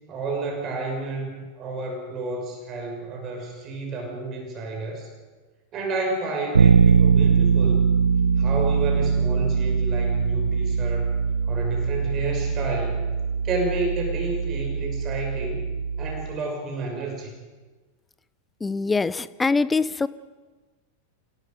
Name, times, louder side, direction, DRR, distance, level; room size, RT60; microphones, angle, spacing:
voice 1, 0.1-5.1 5.7-7.8 8.4-11.2 11.5-13.0 13.4-15.7 16.0-17.3, right 3 dB, 30° right, 2 dB, 5.8 m, -31 dB
Bass guitar, 6.5-16.4, right 6 dB, 75° right, 0.6 m, -22 dB
voice 2, 18.6-20.1, left 4 dB, 10° left, 18 dB, 0.6 m, -23 dB
29.0 x 18.0 x 5.3 m, 1.3 s
figure-of-eight pair, 90°, 0 cm